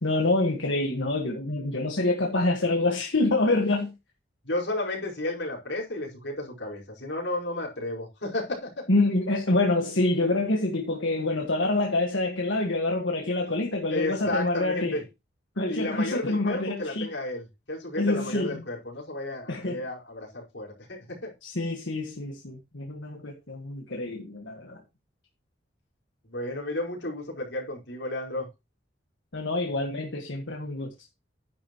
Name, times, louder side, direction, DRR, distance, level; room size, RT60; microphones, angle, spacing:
voice 1, 0.0-3.9 8.9-15.0 15.6-17.1 18.0-18.6 19.5-19.8 21.4-24.8 29.3-30.9, left 2 dB, 90° left, 1.7 m, -26 dB
voice 2, 4.4-8.8 13.9-15.0 15.7-21.3 26.2-28.5, left 1 dB, 70° left, 4.9 m, -32 dB
11.0 x 10.5 x 3.1 m
head